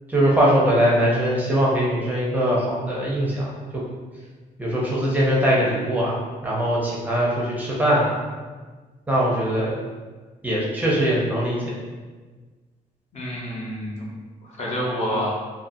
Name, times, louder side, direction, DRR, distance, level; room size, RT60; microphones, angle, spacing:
voice 1, 0.1-3.5 4.6-8.2 9.1-9.8 10.4-11.7, equal, 10° right, -6 dB, 0.5 m, -21 dB
voice 2, 13.1-14.1 14.4-15.3, equal, 50° left, -4 dB, 0.7 m, -28 dB
2.5 x 2.5 x 2.6 m, 1.4 s
cardioid pair, 145°, 14 cm